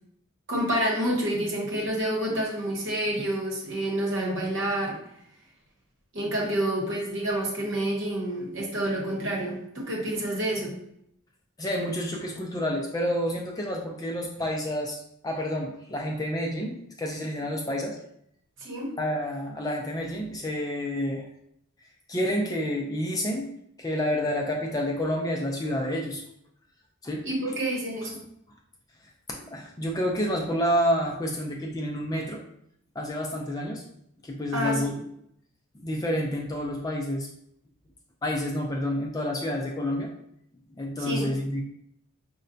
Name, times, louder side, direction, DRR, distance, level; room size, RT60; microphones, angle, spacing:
voice 1, 0.5-5.0 6.1-10.8 18.6-18.9 27.2-28.2 34.5-35.0 41.0-41.3, right 1 dB, 55° right, -2 dB, 1.0 m, -28 dB
voice 2, 11.6-18.0 19.0-21.3 22.1-23.5 23.8-26.2 27.0-27.3 29.3-32.4 33.0-33.8 34.2-35.0 35.8-37.3 38.2-40.1 40.7-41.6, equal, 15° left, 0 dB, 0.3 m, -29 dB
5.3 x 2.1 x 2.6 m, 0.73 s
head